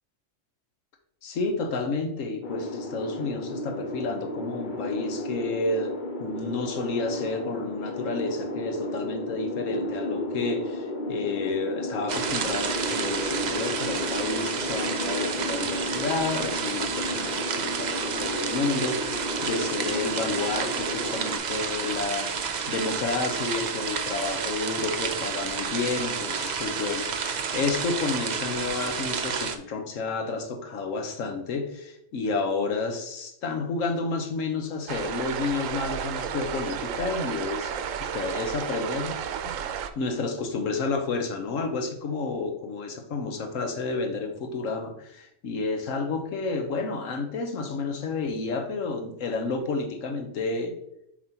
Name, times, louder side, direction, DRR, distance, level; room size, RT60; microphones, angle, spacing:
voice 1, 1.2-5.9 6.2-22.3 22.7-39.1 39.9-50.7, left 3 dB, 90° left, 5 dB, 1.3 m, -30 dB
sound 1, 2.4-21.4, left 1 dB, 45° left, 0.8 m, -33 dB
sound 2, 12.1-29.6, right 6 dB, 50° right, 0.5 m, -30 dB
sound 3, 34.9-39.9, right 8 dB, 85° right, 1.0 m, -32 dB
7.2 x 4.8 x 2.9 m, 0.77 s
omnidirectional pair, 1.3 m